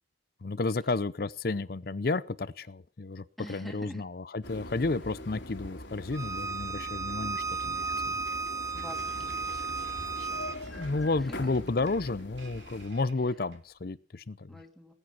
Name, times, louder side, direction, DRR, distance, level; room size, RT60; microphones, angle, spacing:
voice 1, 0.4-8.2 10.7-14.5, left 3 dB, 55° left, 0.6 m, -32 dB
voice 2, 3.4-4.0 8.7-9.8 10.1-10.5 10.8-11.5 13.2-13.4 14.5-14.9, equal, ahead, 2.5 m, -47 dB
sound 1, 4.4-12.9, left 1 dB, 85° left, 3.1 m, -43 dB
Bowed string instrument, 6.1-10.6, right 4 dB, 15° right, 0.6 m, -34 dB
sound 2, 7.5-13.7, right 2 dB, 80° right, 3.6 m, -52 dB
19.5 x 9.0 x 5.9 m
head